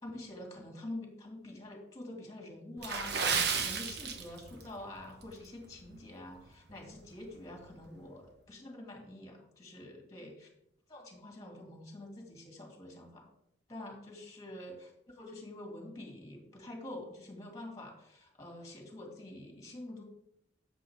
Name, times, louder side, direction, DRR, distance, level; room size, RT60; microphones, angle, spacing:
voice 1, 0.0-10.5 10.9-13.3 13.7-20.0, left 1 dB, 20° left, 1 dB, 2.2 m, -47 dB
Water / Splash splatter, 2.8-4.7 5.0-5.2 5.8-6.0 6.5-6.6, right 5 dB, 60° right, 1.1 m, -33 dB
9.7 x 7.6 x 3.6 m, 0.76 s
head